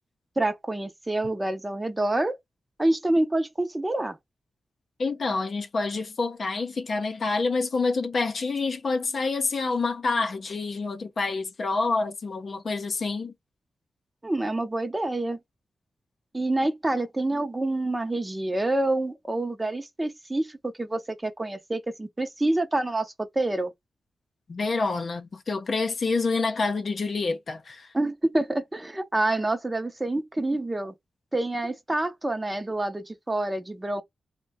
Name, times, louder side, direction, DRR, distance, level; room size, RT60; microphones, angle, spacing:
voice 1, 0.4-2.3 2.8-4.2 14.2-15.4 16.3-23.7 27.9-30.9 31.3-34.0, right 2 dB, 20° right, 0.5 m, -27 dB
voice 2, 5.0-13.3 24.5-27.9, left 3 dB, 55° left, 0.5 m, -27 dB
2.5 x 2.1 x 3.3 m
cardioid pair, 75°, 0 cm